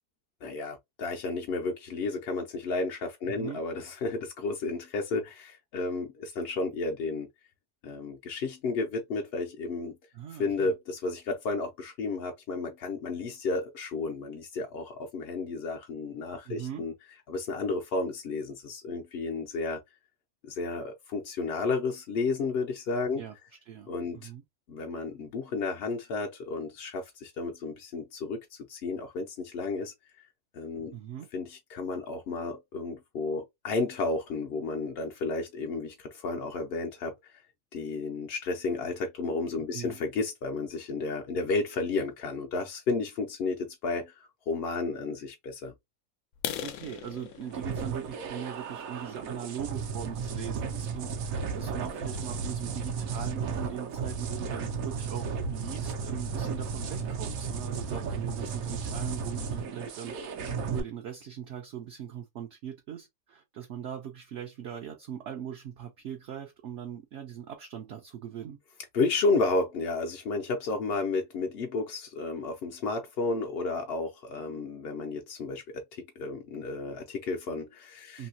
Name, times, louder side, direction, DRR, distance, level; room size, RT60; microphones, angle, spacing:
voice 1, 0.4-7.3 7.8-9.9 10.4-16.9 17.3-19.8 20.4-23.2 23.9-24.3 24.7-29.9 30.5-30.9 31.3-37.3 37.7-45.7 68.9-78.3, left 3 dB, 60° left, 0.7 m, -32 dB
voice 2, 3.3-3.6 10.1-10.7 16.4-16.8 23.2-23.3 23.7-23.9 24.1-24.4 30.9-31.3 39.7-40.0 46.6-68.6 78.2-78.3, right 9 dB, 65° right, 0.8 m, -40 dB
sound 1, 46.3-50.1 50.6-50.8 51.3-51.4 51.8-52.0 52.3-52.4 52.8-52.9 53.1-53.6, left 10 dB, 85° left, 1.0 m, -40 dB
sound 2, 47.5-60.8, right 5 dB, 80° right, 1.1 m, -34 dB
3.1 x 2.7 x 2.7 m
omnidirectional pair, 1.4 m